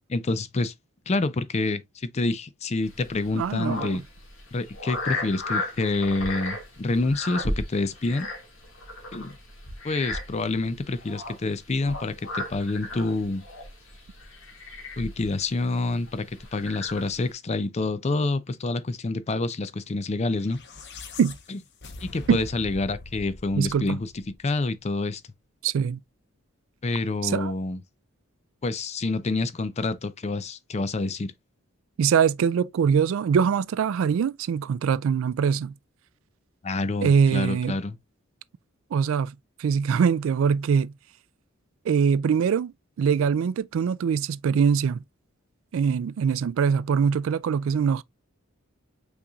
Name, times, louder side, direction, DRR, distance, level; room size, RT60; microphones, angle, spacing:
voice 1, 0.1-0.7 1.1-4.0 4.5-8.3 9.1-9.3 9.8-13.4 15.0-20.6 21.5-21.6 22.0-24.1 24.4-25.2 26.8-27.8 28.6-31.3 36.6-38.0, left 2 dB, 30° left, 0.4 m, -27 dB
sound 1, 2.8-17.3, left 2 dB, 70° left, 1.9 m, -36 dB
voice 2, 3.3-4.0 21.2-21.4 22.3-22.4 23.6-24.0 25.6-26.0 27.2-27.5 32.0-35.7 37.0-37.8 38.9-39.3 39.6-40.9 41.9-42.7 43.0-45.0 45.7-48.0, right 6 dB, 65° right, 0.3 m, -23 dB
sound 2, 20.3-24.7, left 3 dB, 55° left, 0.9 m, -43 dB
5.7 x 4.0 x 2.3 m
head